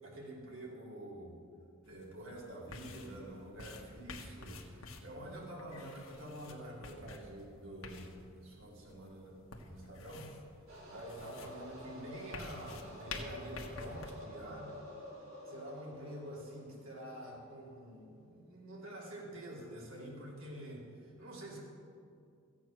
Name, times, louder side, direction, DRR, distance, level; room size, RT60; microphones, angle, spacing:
voice 1, 0.0-1.4 1.8-10.5 10.8-14.8 15.5-21.6, right 1 dB, 75° right, -3 dB, 2.8 m, -48 dB
sound 1, 1.9-14.1, left 3 dB, 75° left, 1.3 m, -50 dB
sound 2, 10.7-17.3, left 1 dB, 90° right, 3.8 m, -49 dB
14.5 x 8.5 x 6.4 m, 2.3 s
head